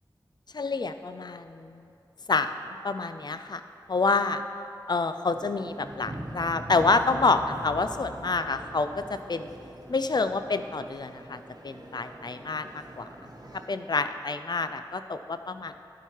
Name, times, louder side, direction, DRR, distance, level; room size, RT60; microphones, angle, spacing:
voice 1, 0.5-1.9 2.3-3.6 3.9-4.4 4.9-9.5 9.9-11.4 11.6-13.1 13.7-15.7, left 3 dB, 55° left, 10 dB, 0.4 m, -28 dB
sound 1, 5.3-13.7, right 1 dB, 50° right, 1.1 m, -42 dB
12.5 x 4.6 x 4.6 m, 2.6 s
wide cardioid pair, 60°, 9 cm